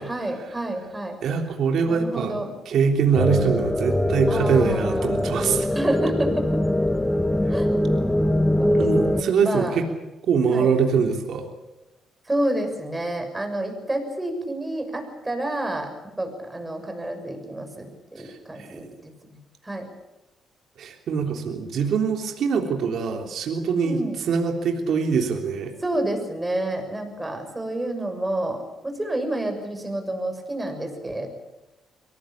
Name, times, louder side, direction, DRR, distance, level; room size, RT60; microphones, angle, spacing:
voice 1, 0.0-1.2 1.9-2.5 4.3-5.1 5.7-6.6 7.5-7.7 8.6-9.8 10.5-10.7 12.2-15.9 16.2-19.4 19.6-19.9 23.8-24.2 25.8-31.3, right 1 dB, 15° right, 5 dB, 6.7 m, -29 dB
voice 2, 1.2-2.4 2.7-5.7 8.8-9.9 10.3-11.5 18.2-18.7 20.8-24.0 24.3-25.7, right 6 dB, 70° right, 4 dB, 3.4 m, -23 dB
sound 1, 3.2-9.2, left 1 dB, 10° left, 1.1 m, -22 dB
23.5 x 18.5 x 8.7 m, 1.0 s
cardioid pair, 90°, 0 cm